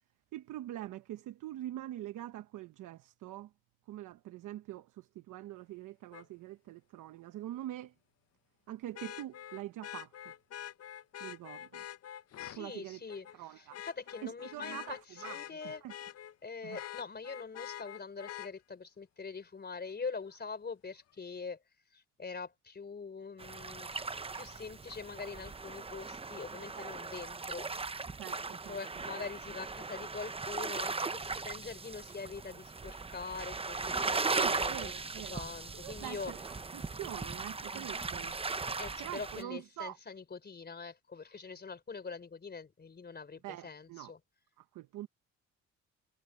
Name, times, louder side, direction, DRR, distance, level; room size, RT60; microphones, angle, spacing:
voice 1, 0.3-3.5 3.9-7.9 8.7-10.3 11.2-11.8 12.5-13.0 13.3-13.8 14.2-15.0 15.2-15.9 16.6-16.8 26.8-26.9 28.2-28.8 34.4-35.4 35.8-38.4 39.0-40.0 43.4-44.1 44.6-45.1, right 14 dB, 85° right, 1.1 m, -44 dB
Vehicle horn car horn honking, 6.1-6.2 8.9-12.6 13.1-13.4 13.7-16.3 16.7-18.5 20.3-20.4, left 11 dB, 55° left, 0.8 m, -45 dB
voice 2, 12.4-15.8 16.4-21.6 21.9-23.9 24.3-27.9 28.7-34.9 35.3-36.3 38.8-44.2, left 5 dB, 35° left, 4.2 m, -44 dB
sound 1, 23.4-39.4, right 4 dB, 20° right, 0.9 m, -38 dB
cardioid pair, 90°, 30 cm